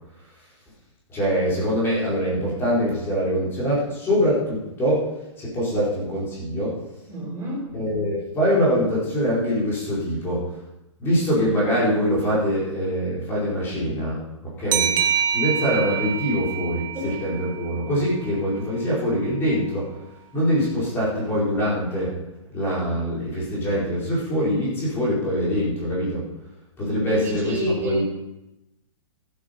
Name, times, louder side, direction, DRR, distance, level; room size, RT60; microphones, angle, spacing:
voice 1, 1.1-5.1 5.4-6.7 7.7-10.4 11.0-15.0 15.3-19.9 20.3-22.1 22.5-26.2 26.8-28.0, equal, 15° left, -7 dB, 4.6 m, -24 dB
voice 2, 7.1-7.7 16.9-17.1 27.1-28.0, equal, 15° right, -2 dB, 3.7 m, -27 dB
sound 1, 14.7-18.0, right 9 dB, 40° right, 0.9 m, -26 dB
14.0 x 9.8 x 5.3 m, 0.93 s
hypercardioid pair, 165°, 17 cm